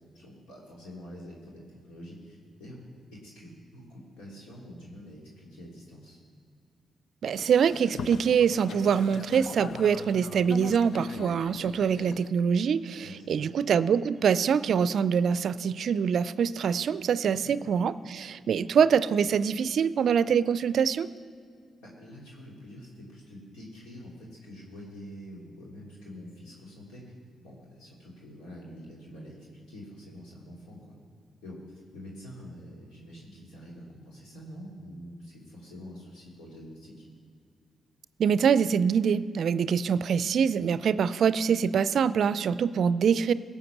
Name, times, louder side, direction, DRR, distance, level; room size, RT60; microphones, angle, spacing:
voice 1, 0.1-2.8 3.1-6.2 12.9-13.5 17.4-17.5 18.5-18.7 21.8-27.0 27.4-30.9 31.4-37.1, equal, 85° left, -4 dB, 2.8 m, -46 dB
voice 2, 7.2-21.1 38.2-43.3, right 7 dB, 65° right, 16 dB, 0.4 m, -24 dB
Boat Water vehicle, 7.3-12.3, left 6 dB, 65° left, 0.4 m, -41 dB
17.0 x 7.2 x 6.0 m, 2.3 s
supercardioid pair, 50°, 0 cm